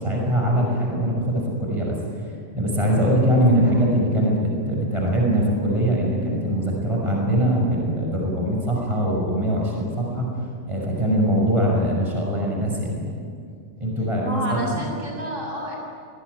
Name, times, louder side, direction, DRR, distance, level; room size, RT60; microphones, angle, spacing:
voice 1, 0.0-2.0 2.5-10.3 10.7-13.1 13.8-14.9, equal, 25° right, -1 dB, 6.0 m, -22 dB
voice 2, 14.2-15.8, right 1 dB, 75° right, -2 dB, 7.7 m, -29 dB
27.0 x 20.5 x 9.6 m, 2.3 s
omnidirectional pair, 1.3 m